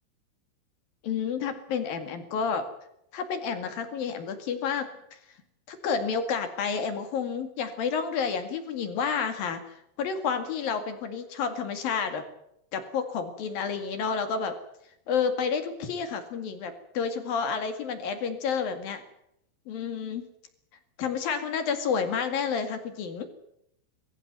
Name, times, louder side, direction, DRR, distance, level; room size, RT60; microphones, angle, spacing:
voice 1, 1.0-2.6 3.1-4.9 5.7-9.6 10.0-12.2 12.7-14.5 15.1-19.0 19.7-20.2 21.0-23.3, left 6 dB, 55° left, 8 dB, 3.5 m, -30 dB
22.0 x 15.5 x 9.5 m, 0.75 s
omnidirectional pair, 5.5 m